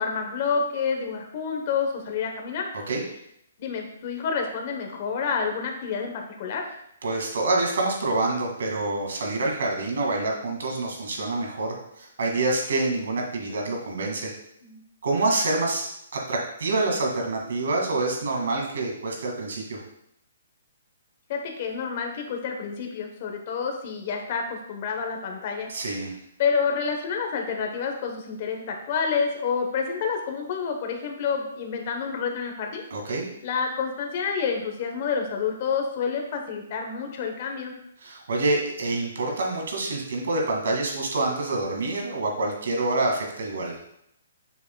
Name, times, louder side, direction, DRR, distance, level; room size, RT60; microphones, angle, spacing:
voice 1, 0.0-2.7 3.6-6.6 14.6-14.8 21.3-25.7 26.4-32.8 33.4-37.7, left 6 dB, 35° left, 3 dB, 1.0 m, -28 dB
voice 2, 7.0-14.3 15.0-15.9 16.1-19.8 25.7-26.1 32.9-33.3 38.0-43.8, right 2 dB, 70° right, 0 dB, 2.0 m, -27 dB
7.0 x 6.4 x 2.3 m, 0.76 s
hypercardioid pair, 165°, 0 cm